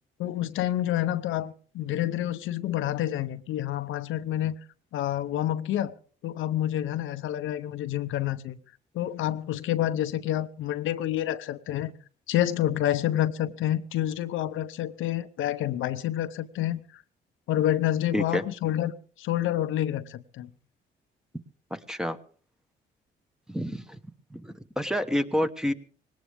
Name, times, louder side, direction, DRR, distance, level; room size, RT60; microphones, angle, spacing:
voice 1, 0.2-4.6 4.9-5.9 6.2-8.6 8.9-11.9 12.3-17.0 17.5-18.9 19.2-20.5, left 12 dB, 85° left, 0.8 m, -28 dB
voice 2, 18.1-18.4 21.7-22.2 23.5-24.0 24.3-25.7, equal, 5° right, 1.1 m, -29 dB
19.5 x 18.0 x 3.5 m
cardioid pair, 90°, 20 cm